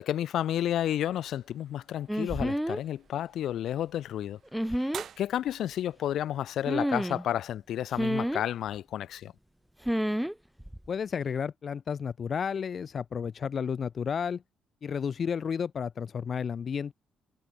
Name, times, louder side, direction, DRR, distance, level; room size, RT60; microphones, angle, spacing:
voice 1, 0.0-4.4 5.2-9.3, left 11 dB, 75° left, 1.1 m, -31 dB
sound 1, 0.7-7.2, right 9 dB, 65° right, 3.8 m, -50 dB
sound 2, 2.1-2.8 4.5-5.0 6.7-7.2 7.9-8.4 9.8-10.3 10.6-10.9, equal, ahead, 0.9 m, -29 dB
voice 2, 10.9-14.4 14.8-16.9, left 7 dB, 50° left, 0.5 m, -32 dB
cardioid pair, 90°, 0 cm